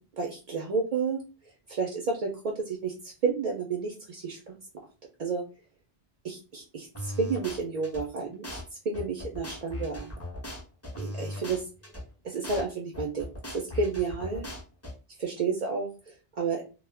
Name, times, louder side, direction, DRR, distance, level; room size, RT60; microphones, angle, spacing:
voice 1, 0.2-1.2 1.7-4.5 5.2-5.4 6.2-8.6 8.8-10.1 11.0-11.6 12.2-13.3 13.5-14.5 15.2-16.6, right 4 dB, 55° right, 1 dB, 0.4 m, -31 dB
sound 1, 6.9-8.0 8.4-8.6 8.9-12.0 12.4-12.6 12.9-14.9, left 1 dB, 15° left, 0.8 m, -38 dB
2.3 x 2.0 x 3.2 m, 0.34 s
omnidirectional pair, 1.1 m